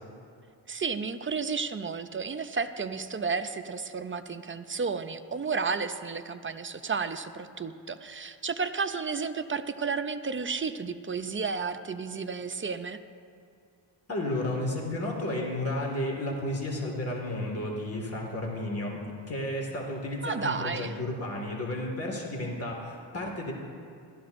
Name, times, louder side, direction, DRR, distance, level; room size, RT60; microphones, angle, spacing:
voice 1, 0.7-13.0 20.2-21.0, right 5 dB, 25° right, 9 dB, 0.5 m, -32 dB
voice 2, 14.1-23.5, left 1 dB, 30° left, -1 dB, 1.9 m, -32 dB
16.0 x 13.0 x 2.6 m, 2.4 s
cardioid pair, 80°, 48 cm